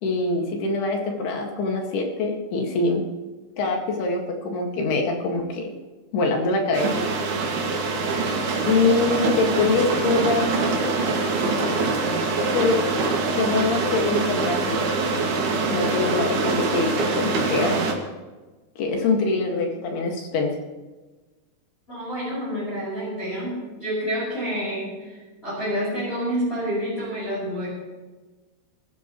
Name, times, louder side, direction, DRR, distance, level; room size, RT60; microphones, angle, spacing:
voice 1, 0.0-3.1 3.6-5.7 6.1-7.1 8.7-10.6 12.5-12.8 13.3-14.8 15.7-17.9 18.8-20.5, left 3 dB, 60° left, 1 dB, 3.6 m, -24 dB
sound 1, 6.7-17.9, right 3 dB, 60° right, 3.8 m, -24 dB
voice 2, 21.9-27.7, equal, 10° left, -7 dB, 6.0 m, -28 dB
23.5 x 13.5 x 3.1 m, 1.2 s
omnidirectional pair, 5.5 m